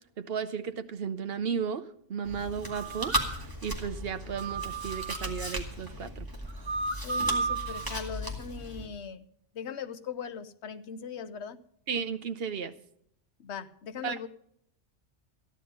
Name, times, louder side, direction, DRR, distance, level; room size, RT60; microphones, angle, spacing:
voice 1, 0.2-6.3 11.9-12.7 14.0-14.2, right 6 dB, 60° right, 1.0 m, -34 dB
Chewing mastication, 2.2-8.9, equal, 15° right, 2.1 m, -36 dB
sound 1, 2.6-3.4 4.3-5.5 6.5-8.0, right 4 dB, 35° right, 0.5 m, -34 dB
voice 2, 7.0-9.2 9.5-11.6 13.4-14.3, left 7 dB, 70° left, 1.1 m, -39 dB
14.0 x 10.5 x 5.3 m
omnidirectional pair, 1.2 m